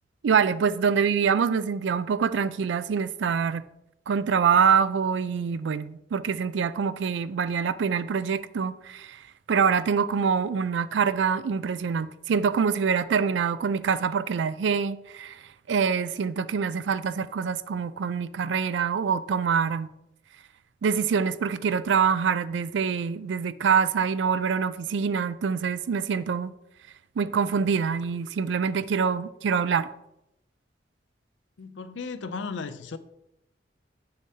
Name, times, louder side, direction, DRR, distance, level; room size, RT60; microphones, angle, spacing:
voice 1, 0.2-3.6 4.1-9.2 9.5-15.3 15.7-19.9 20.8-26.5 27.2-29.9, right 6 dB, 80° right, 0.4 m, -25 dB
voice 2, 31.6-33.0, left 4 dB, 85° left, 0.5 m, -35 dB
7.7 x 6.6 x 2.8 m
head